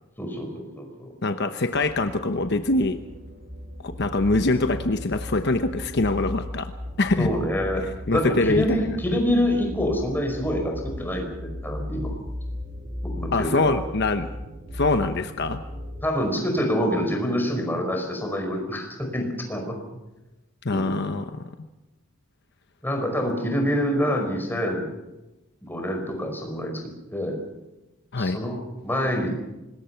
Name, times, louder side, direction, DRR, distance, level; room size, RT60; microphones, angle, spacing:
voice 1, 0.2-1.1 7.2-12.1 13.0-13.8 16.0-19.8 20.7-21.0 22.8-24.9 25.6-26.8 27.1-27.4 28.2-29.3, equal, 10° left, 3 dB, 5.2 m, -26 dB
voice 2, 1.2-3.0 3.8-6.7 7.0-7.3 8.1-9.0 13.3-14.3 14.7-15.6 20.6-21.4 28.1-28.4, left 2 dB, 55° left, 8 dB, 0.9 m, -24 dB
sound 1, 1.7-16.1, left 1 dB, 45° right, 3.9 m, -36 dB
25.5 x 20.5 x 5.8 m, 1.0 s
head